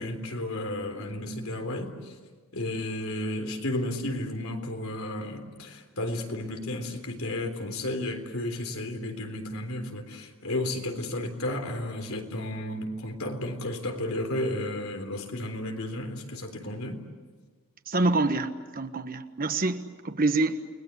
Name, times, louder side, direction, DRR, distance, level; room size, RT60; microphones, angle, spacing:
voice 1, 0.0-2.1 2.5-17.0, left 1 dB, 85° left, 3.6 m, -33 dB
voice 2, 17.9-20.7, right 2 dB, 45° right, 1.4 m, -26 dB
30.0 x 19.5 x 9.7 m
head